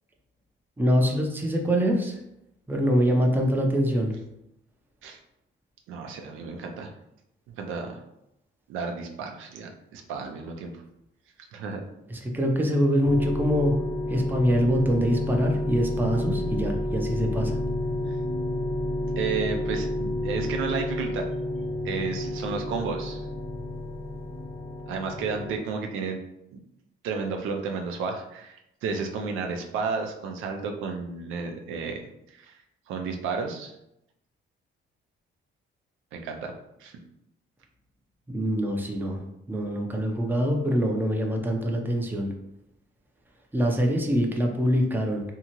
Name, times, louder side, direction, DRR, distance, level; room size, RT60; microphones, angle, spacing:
voice 1, 0.8-2.2 2.7-4.1 12.1-13.8 14.1-17.6 38.3-39.2 39.5-42.3 43.5-45.2, equal, 10° right, 1 dB, 0.5 m, -24 dB
voice 2, 5.9-6.9 7.5-8.0 8.7-10.7 11.5-11.8 19.2-21.3 21.8-23.2 24.9-26.2 26.5-26.6 27.0-32.0 32.3-32.5 32.9-33.7 36.1-36.5 36.8-36.9, right 5 dB, 90° right, 3 dB, 0.4 m, -32 dB
sound 1, 13.0-25.6, left 1 dB, 40° left, 0.7 m, -30 dB
2.7 x 2.4 x 2.9 m, 0.83 s
cardioid pair, 90°, 20 cm